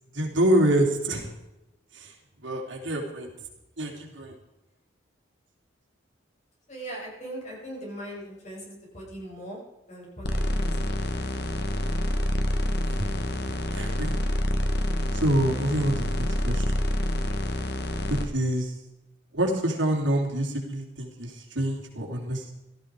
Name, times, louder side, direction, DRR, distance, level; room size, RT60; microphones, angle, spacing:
voice 1, 0.1-1.3 1.9-2.1 2.4-3.3 3.8-4.4 12.6-12.7 13.7-14.2 15.1-16.8 18.1-18.7 19.3-22.5, right 1 dB, 75° right, 0 dB, 3.7 m, -26 dB
voice 2, 6.7-9.6 9.9-11.2, right 1 dB, 40° left, -3 dB, 7.1 m, -40 dB
sound 1, 10.2-18.2, left 1 dB, 60° left, 1.8 m, -27 dB
16.5 x 14.0 x 4.9 m, 0.95 s
head